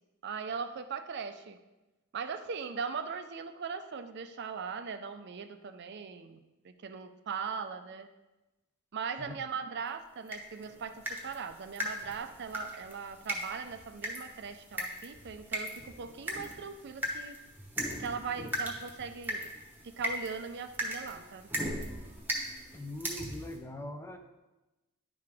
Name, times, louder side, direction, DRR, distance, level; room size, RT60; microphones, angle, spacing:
voice 1, 0.2-1.6 2.1-6.4 6.6-8.1 8.9-17.4 18.0-19.5 19.8-21.4, right 5 dB, 50° right, 9 dB, 0.4 m, -39 dB
sound 1, 10.3-23.6, equal, 10° right, 1.0 m, -39 dB
voice 2, 22.7-24.2, left 1 dB, 10° left, 5 dB, 0.5 m, -41 dB
10.5 x 4.9 x 3.5 m, 1.1 s
head